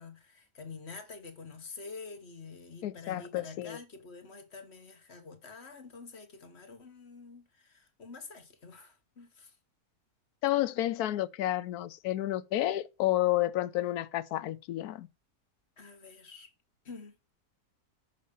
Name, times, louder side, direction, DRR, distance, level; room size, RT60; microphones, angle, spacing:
voice 1, 0.0-9.6 15.8-16.5 16.8-17.1, left 4 dB, 45° left, 1.7 m, -47 dB
voice 2, 2.8-3.8 10.4-15.1, left 14 dB, 90° left, 1.1 m, -30 dB
6.5 x 5.2 x 6.8 m
omnidirectional pair, 1.6 m